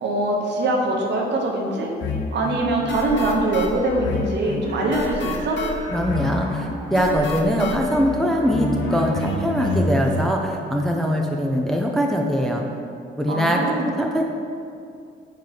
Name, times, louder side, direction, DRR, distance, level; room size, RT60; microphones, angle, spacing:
voice 1, 0.0-1.9 2.3-5.6 13.3-13.9, right 2 dB, 60° right, 0 dB, 0.8 m, -23 dB
sound 1, 2.0-10.3, left 2 dB, 65° left, 0.6 m, -28 dB
sound 2, 4.7-8.2, right 1 dB, 30° right, 0.9 m, -41 dB
voice 2, 5.9-12.6 13.2-14.2, equal, ahead, 1 dB, 0.3 m, -22 dB
3.9 x 2.9 x 4.8 m, 2.4 s
cardioid pair, 90°, 20 cm